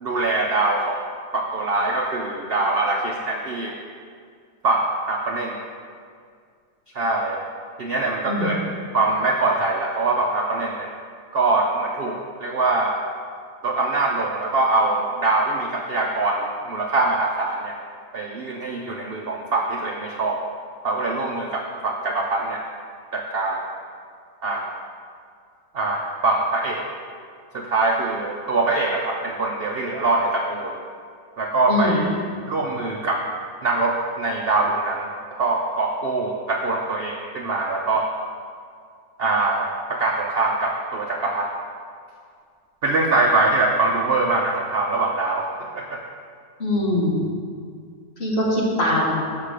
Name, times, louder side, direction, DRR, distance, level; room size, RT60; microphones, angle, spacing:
voice 1, 0.0-1.0 1.3-3.8 4.6-5.6 6.9-7.4 7.8-8.6 8.9-10.9 11.3-13.0 13.6-17.8 18.1-20.4 20.8-22.6 23.1-23.6 24.4-24.7 25.7-26.8 27.5-30.8 31.4-32.1 32.5-33.3 33.6-38.1 39.2-41.5 42.8-45.5 45.7-46.0, right 2 dB, 70° right, 0 dB, 0.5 m, -23 dB
voice 2, 31.7-32.0 46.6-47.2 48.2-49.2, left 1 dB, 35° left, -5 dB, 1.9 m, -22 dB
7.5 x 6.0 x 6.6 m, 2.1 s
omnidirectional pair, 1.9 m